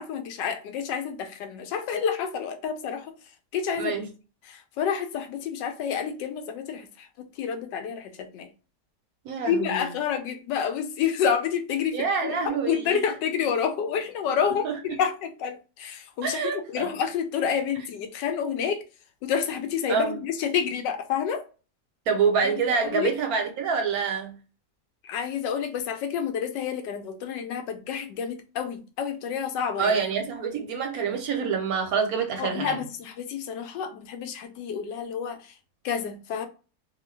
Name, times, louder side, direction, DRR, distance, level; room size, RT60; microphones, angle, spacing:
voice 1, 0.0-3.1 3.5-3.9 4.5-7.1 7.4-8.5 9.5-18.8 19.2-21.4 22.4-22.5 22.8-23.1 25.0-29.9 32.4-35.4 35.8-36.5, left 7 dB, 85° left, 1.2 m, -29 dB
voice 2, 9.2-10.0 11.9-13.0 14.6-14.8 16.2-16.9 19.9-20.2 22.1-24.4 29.8-32.8, right 5 dB, 70° right, 0.9 m, -26 dB
2.9 x 2.3 x 3.1 m
omnidirectional pair, 1.9 m